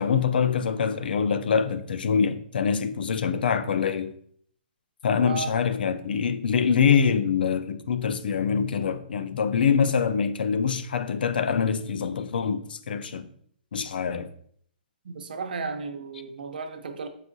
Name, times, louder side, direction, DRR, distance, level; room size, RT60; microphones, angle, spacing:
voice 1, 0.0-4.1 5.0-13.3 13.7-14.3, left 6 dB, 75° left, 0.4 m, -24 dB
voice 2, 5.2-5.7 15.0-17.1, right 4 dB, 70° right, 0.6 m, -34 dB
4.8 x 3.5 x 2.6 m
hypercardioid pair, 170°, 5 cm